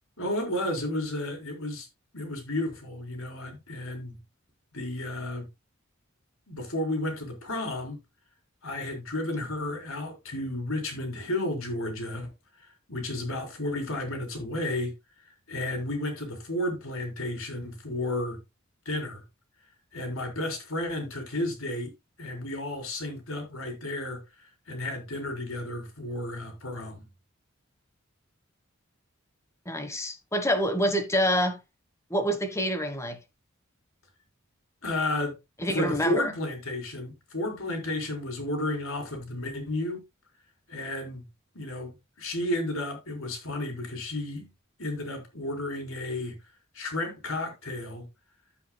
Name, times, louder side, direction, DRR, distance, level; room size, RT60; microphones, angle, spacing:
voice 1, 0.2-1.9 2.1-4.2 4.7-5.4 6.5-8.0 8.6-12.3 12.6-14.9 15.5-18.4 18.9-19.2 19.9-21.9 22.2-27.0 34.8-35.4 35.7-40.0 40.7-41.2 41.5-44.5 44.8-46.4 46.7-48.0, left 1 dB, 85° left, 3.8 m, -32 dB
voice 2, 29.7-31.6 32.1-33.2 35.6-36.3, equal, 15° left, 1.3 m, -26 dB
14.5 x 5.8 x 2.2 m
head